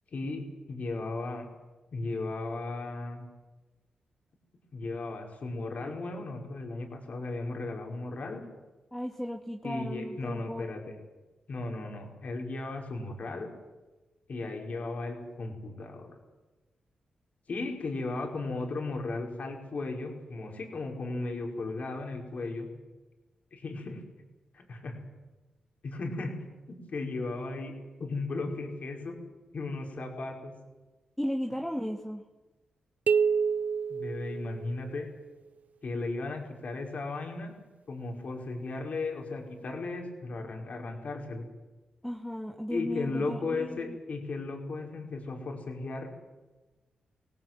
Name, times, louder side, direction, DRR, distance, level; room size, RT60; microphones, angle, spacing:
voice 1, 0.1-1.5 1.9-3.3 4.7-8.4 9.6-11.0 11.5-13.5 14.3-16.2 17.5-22.7 23.5-24.0 24.5-25.0 25.8-26.3 26.7-27.7 28.0-29.2 29.5-30.5 33.9-35.1 35.8-37.5 37.9-41.5 42.7-46.1, left 3 dB, 60° left, 2 dB, 5.6 m, -35 dB
voice 2, 8.9-10.6 29.9-30.4 31.2-32.2 42.0-44.0, equal, 5° left, 2 dB, 2.3 m, -36 dB
sound 1, 33.1-35.0, right 6 dB, 65° right, 0.7 m, -28 dB
24.0 x 17.5 x 9.3 m, 1.2 s
cardioid pair, 70°, 3 cm